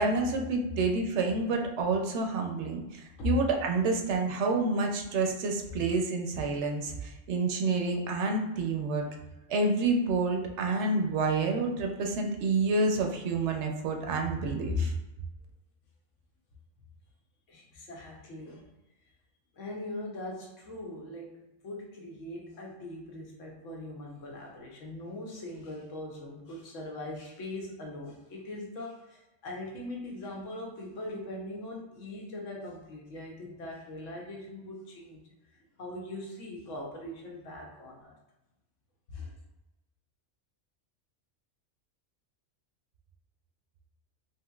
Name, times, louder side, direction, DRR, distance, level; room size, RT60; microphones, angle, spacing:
voice 1, 0.0-9.1 9.5-14.9, right 3 dB, 70° right, 2 dB, 0.9 m, -28 dB
voice 2, 17.5-18.7 19.5-38.2 39.1-39.3, left 3 dB, 90° left, -1 dB, 1.2 m, -40 dB
3.6 x 2.7 x 2.3 m, 0.99 s
omnidirectional pair, 1.2 m